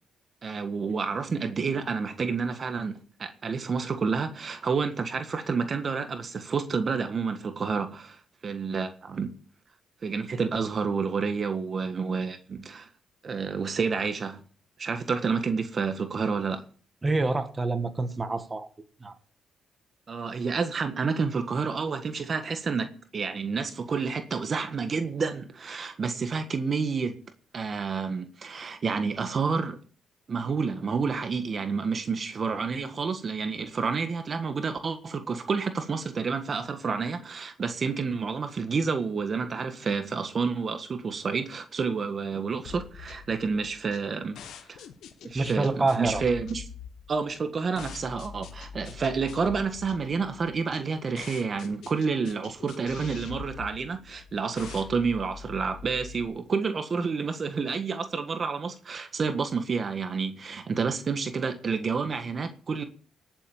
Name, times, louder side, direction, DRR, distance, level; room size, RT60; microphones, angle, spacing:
voice 1, 0.4-9.3 10.0-12.9 13.2-14.4 14.8-16.7 20.1-27.2 27.5-29.8 30.3-44.4 44.7-44.8 45.2-46.6 47.1-62.8, right 5 dB, 45° right, 1.6 m, -29 dB
voice 2, 17.0-18.7 19.0-19.1 45.3-46.2, right 3 dB, 25° right, 1.8 m, -27 dB
sound 1, 42.6-56.2, left 7 dB, 80° left, 1.8 m, -44 dB
18.0 x 7.8 x 7.2 m
cardioid pair, 80°, 0 cm